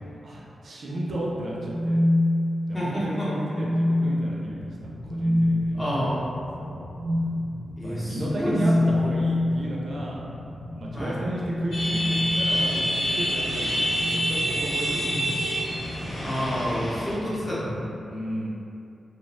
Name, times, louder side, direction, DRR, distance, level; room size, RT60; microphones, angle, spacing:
voice 1, 0.2-2.0 2.7-6.0 6.6-6.9 7.8-10.2 10.7-15.4 16.2-16.7 18.1-18.5, right 1 dB, 65° right, -4 dB, 0.4 m, -34 dB
sound 1, 1.5-2.8 3.5-4.2 5.0-5.5 6.9-7.3 8.4-9.5 11.0-12.8 13.9-14.3 15.6-15.8, left 1 dB, 15° right, 0.6 m, -25 dB
voice 2, 2.7-3.3 5.7-6.2 7.8-9.0 10.9-11.2 14.9-15.3 16.2-17.9, equal, 25° left, -9 dB, 0.7 m, -29 dB
sound 2, 4.4-17.8, left 1 dB, 50° left, 0.3 m, -39 dB
sound 3, 11.7-17.1, equal, 90° left, 0.7 m, -27 dB
2.3 x 2.1 x 2.9 m, 2.7 s
wide cardioid pair, 105°, 0 cm